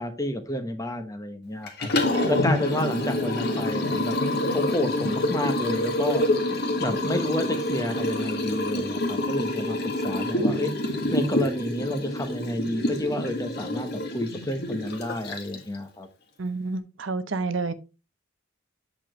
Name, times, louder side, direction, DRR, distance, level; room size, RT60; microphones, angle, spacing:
voice 1, 0.0-1.9 2.3-6.3 6.8-9.8 10.0-10.7 11.1-16.1, left 1 dB, 15° left, 1.1 m, -30 dB
Liquid, 1.7-15.8, left 1 dB, 50° left, 1.7 m, -27 dB
voice 2, 16.4-17.7, right 3 dB, 65° right, 0.8 m, -29 dB
8.6 x 6.7 x 3.2 m
head